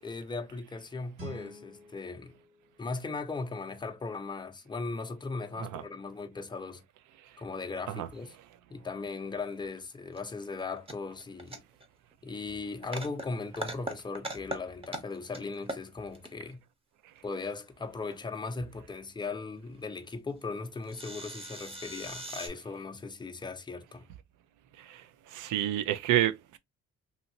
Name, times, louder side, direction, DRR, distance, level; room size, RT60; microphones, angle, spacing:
voice 1, 0.0-2.4 2.8-6.8 7.4-8.4 8.7-11.6 12.2-16.6 17.2-24.1, left 3 dB, 15° left, 0.5 m, -38 dB
Guitar, 1.1-3.9, right 2 dB, 45° right, 1.7 m, -50 dB
sound 1, 10.2-10.3 10.5-11.8 12.1-12.2 12.6-13.2 13.5-14.6 14.8-15.4 15.6-16.3 18.1-18.4 19.6-19.7 19.9-20.0 20.4-20.5 20.8-22.5, right 1 dB, 20° right, 0.9 m, -39 dB
voice 2, 25.3-26.6, right 12 dB, 85° right, 0.5 m, -29 dB
2.8 x 2.7 x 2.6 m
cardioid pair, 90°, 30 cm